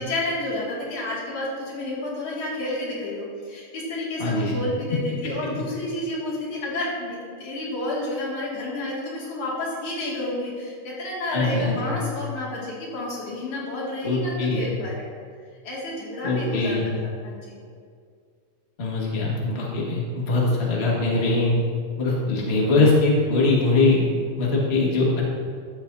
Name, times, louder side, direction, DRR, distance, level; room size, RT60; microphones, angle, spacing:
voice 1, 0.0-15.1 15.6-16.9 17.2-17.5, left 1 dB, 90° left, -6 dB, 3.6 m, -30 dB
voice 2, 4.2-4.5 11.3-11.9 14.0-14.6 16.2-16.9 18.8-21.5 22.0-24.0 24.4-25.2, left 3 dB, 30° left, -4 dB, 1.3 m, -22 dB
13.5 x 7.1 x 2.7 m, 2.2 s
omnidirectional pair, 3.3 m